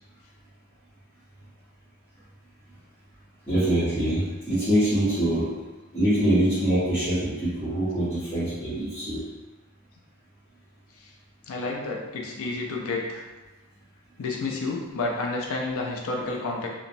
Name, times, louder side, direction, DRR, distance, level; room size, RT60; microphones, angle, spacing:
voice 1, 3.5-5.5 5.9-9.2, right 1 dB, 10° left, -15 dB, 0.8 m, -24 dB
voice 2, 11.5-13.3 14.2-16.7, left 3 dB, 65° left, -1 dB, 0.5 m, -30 dB
2.9 x 2.1 x 2.5 m, 1.1 s
head